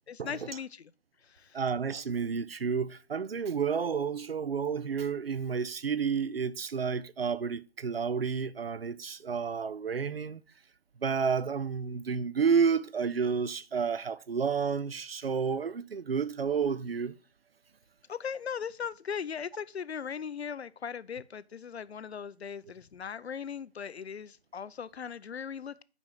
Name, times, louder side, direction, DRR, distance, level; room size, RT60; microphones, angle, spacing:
voice 1, 0.1-0.9 1.3-1.6 18.1-25.8, left 7 dB, 75° left, 0.5 m, -39 dB
voice 2, 1.5-10.4 11.0-17.1, right 6 dB, 65° right, 0.5 m, -30 dB
6.1 x 5.2 x 5.6 m
figure-of-eight pair, 180°, 32 cm